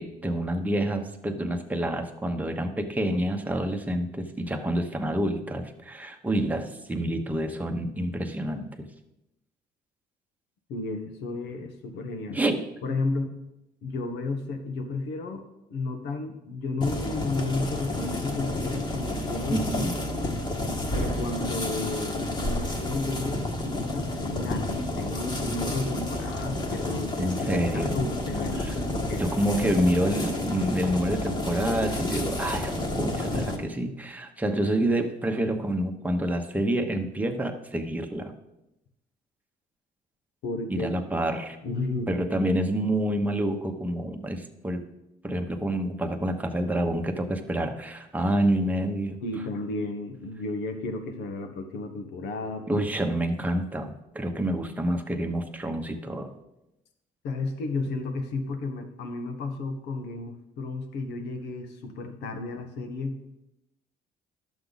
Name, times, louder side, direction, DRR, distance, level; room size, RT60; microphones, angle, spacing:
voice 1, 0.0-8.9 12.3-12.6 19.5-19.9 27.2-28.0 28.6-28.7 29.2-38.3 40.7-41.6 42.1-44.8 45.2-49.2 52.7-56.3, right 1 dB, 10° right, 4 dB, 1.1 m, -28 dB
voice 2, 10.7-12.5 12.8-13.3 13.8-15.4 15.7-20.0 20.9-29.3 40.4-40.9 41.6-42.1 49.2-52.8 57.2-63.2, left 3 dB, 80° left, 7 dB, 1.3 m, -33 dB
sound 1, 16.8-33.6, left 1 dB, 25° left, 1.5 m, -30 dB
11.5 x 7.2 x 4.0 m, 0.89 s
cardioid pair, 110°, 17 cm